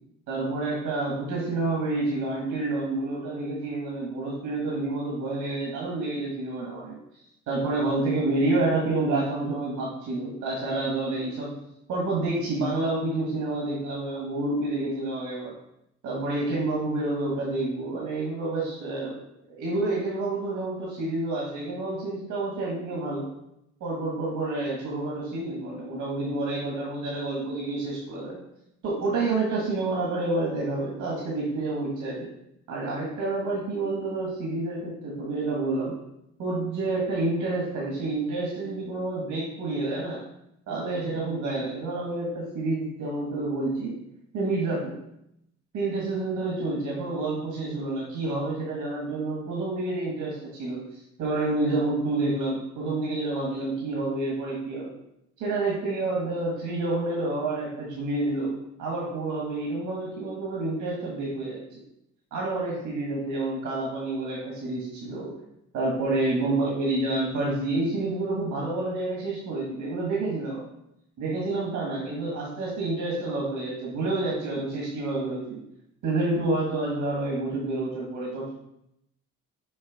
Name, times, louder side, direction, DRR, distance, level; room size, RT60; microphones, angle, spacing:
voice 1, 0.3-7.0 7.5-11.5 11.9-15.5 16.0-19.2 19.5-23.3 23.8-28.4 28.8-32.3 32.7-35.9 36.4-40.2 40.7-44.0 44.3-45.0 45.7-54.9 55.4-58.5 58.8-61.8 62.3-65.3 65.7-70.6 71.2-75.6 76.0-78.5, right 2 dB, 80° right, -3 dB, 1.7 m, -29 dB
6.5 x 3.3 x 4.9 m, 0.79 s
cardioid pair, 90°, 30 cm